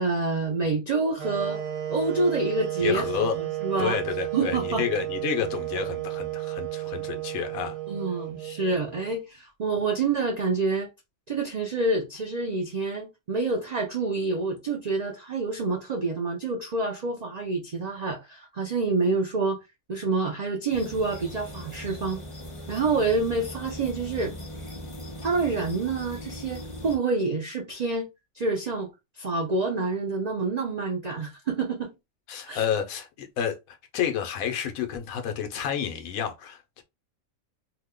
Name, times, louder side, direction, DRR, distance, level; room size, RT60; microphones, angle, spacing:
voice 1, 0.0-1.6 1.9-3.1 3.4-4.0 4.3-4.8 7.9-10.9 11.3-19.6 19.9-22.2 22.7-24.3 25.2-28.1 28.3-28.9 29.1-31.9 32.5-32.6, right 3 dB, 85° right, 0.3 m, -27 dB
sound 1, 1.2-9.2, right 14 dB, 65° right, 1.2 m, -33 dB
voice 2, 2.8-3.4 3.8-7.8 32.3-36.8, left 8 dB, 85° left, 1.1 m, -30 dB
sound 2, 20.7-27.0, left 1 dB, 35° left, 0.5 m, -39 dB
2.8 x 2.1 x 3.5 m
omnidirectional pair, 1.5 m